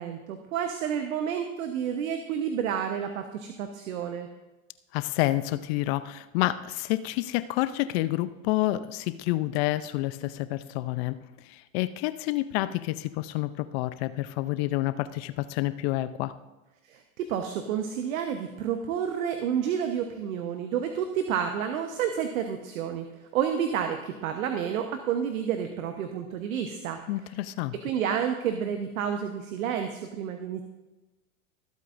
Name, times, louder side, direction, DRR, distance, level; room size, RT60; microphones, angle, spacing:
voice 1, 0.0-4.3 16.9-23.1 23.3-27.0 27.8-30.7, right 8 dB, 70° right, 6 dB, 1.1 m, -30 dB
voice 2, 4.9-11.2 11.4-16.4 27.1-27.7, left 16 dB, 50° left, 14 dB, 0.6 m, -29 dB
21.5 x 8.2 x 2.6 m, 1.1 s
hypercardioid pair, 105°, 42 cm